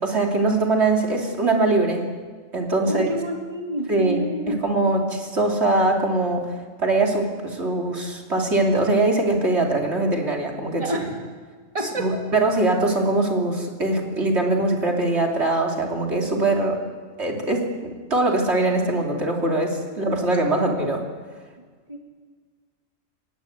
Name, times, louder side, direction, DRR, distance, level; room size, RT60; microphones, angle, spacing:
voice 1, 0.0-2.1 2.5-3.1 3.9-4.2 4.5-11.0 12.0-16.8 17.2-21.0, right 2 dB, 60° right, 0 dB, 3.3 m, -22 dB
voice 2, 2.8-4.6 10.8-11.1 11.7-12.2 19.9-20.0 20.5-20.7 21.9-22.0, right 1 dB, 25° right, 1 dB, 2.9 m, -28 dB
26.5 x 20.0 x 8.2 m, 1.5 s
omnidirectional pair, 1.3 m